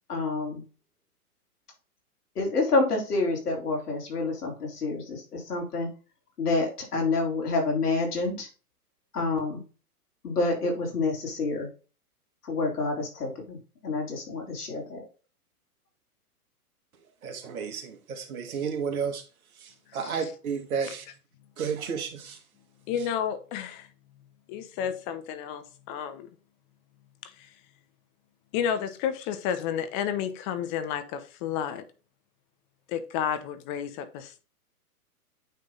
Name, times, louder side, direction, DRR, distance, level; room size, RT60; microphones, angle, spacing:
voice 1, 0.1-0.6 2.4-5.9 6.4-8.5 9.1-9.6 10.2-11.7 12.4-13.6 13.8-15.1, left 3 dB, 75° left, 3.6 m, -28 dB
voice 2, 17.2-19.2 19.9-21.0 21.6-22.4, right 6 dB, 65° right, 2.0 m, -32 dB
voice 3, 19.9-20.3 20.8-21.1 22.9-23.9 24.5-26.3 27.2-27.5 28.5-31.8 32.9-34.4, left 8 dB, 30° left, 0.9 m, -31 dB
9.1 x 3.5 x 3.8 m
hypercardioid pair, 130°, 45 cm